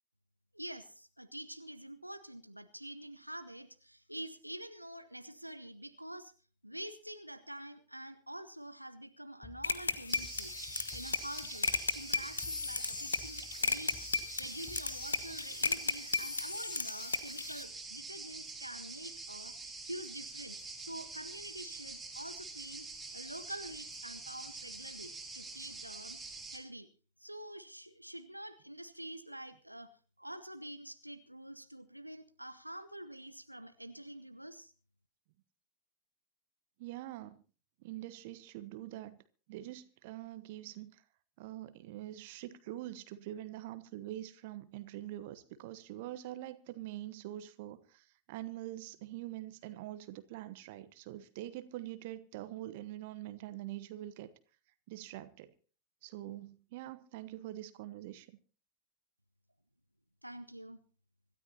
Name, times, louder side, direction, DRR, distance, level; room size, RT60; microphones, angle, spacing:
voice 1, 0.5-6.3 6.6-10.5 10.9-14.0 14.4-22.9 23.1-26.2 26.5-26.9 27.2-29.9 30.2-34.7 60.2-60.8, right 1 dB, 90° right, 0.9 m, -47 dB
sound 1, 9.4-16.0, left 7 dB, 30° left, 1.2 m, -56 dB
sound 2, 9.6-17.6, left 4 dB, 75° left, 0.9 m, -35 dB
sound 3, 10.1-26.6, right 3 dB, 5° right, 3.6 m, -46 dB
voice 2, 36.8-37.4 37.8-39.2 39.5-41.0 41.4-54.3 54.9-55.5 56.0-58.4, right 14 dB, 50° right, 1.1 m, -44 dB
25.5 x 13.0 x 2.8 m
figure-of-eight pair, 90°, 0 cm